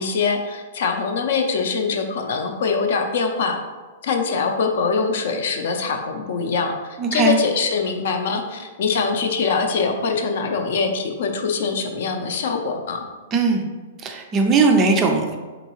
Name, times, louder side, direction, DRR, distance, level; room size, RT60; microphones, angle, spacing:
voice 1, 0.0-3.6 4.0-13.0, left 5 dB, 55° left, 4 dB, 0.6 m, -23 dB
voice 2, 7.0-7.4 13.3-13.6 14.0-15.4, right 4 dB, 15° right, 3 dB, 0.4 m, -18 dB
4.4 x 3.9 x 3.0 m, 1.3 s
hypercardioid pair, 175°, 0 cm